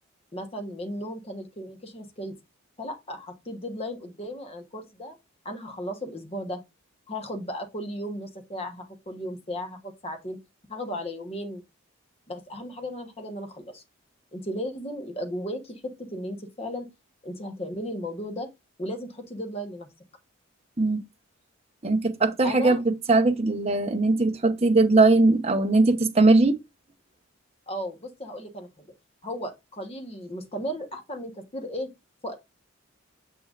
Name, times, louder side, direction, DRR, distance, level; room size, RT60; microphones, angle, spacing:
voice 1, 0.3-2.4 2.8-5.2 5.4-6.6 7.1-10.4 10.7-11.6 12.3-13.8 14.3-16.9 17.2-18.5 18.8-19.9 22.4-22.8 27.7-28.7 29.2-31.9 32.2-32.3, equal, 30° left, 1.2 m, -35 dB
voice 2, 21.8-26.6, right 3 dB, 30° right, 0.9 m, -20 dB
7.0 x 6.3 x 2.5 m
head